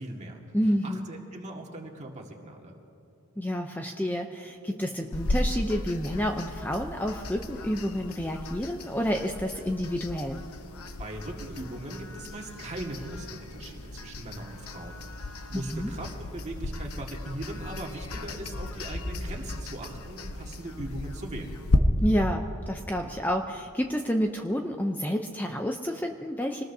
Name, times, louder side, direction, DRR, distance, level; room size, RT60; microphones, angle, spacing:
voice 1, 0.0-0.4 0.8-2.8 11.0-15.0 15.5-21.6, right 1 dB, 35° right, 0 dB, 1.9 m, -39 dB
voice 2, 0.5-1.1 3.4-10.5 15.5-15.9 22.0-26.6, equal, 10° left, 3 dB, 0.6 m, -29 dB
sound 1, 5.1-21.8, left 2 dB, 90° left, 1.0 m, -35 dB
25.0 x 19.5 x 2.7 m, 2.8 s
head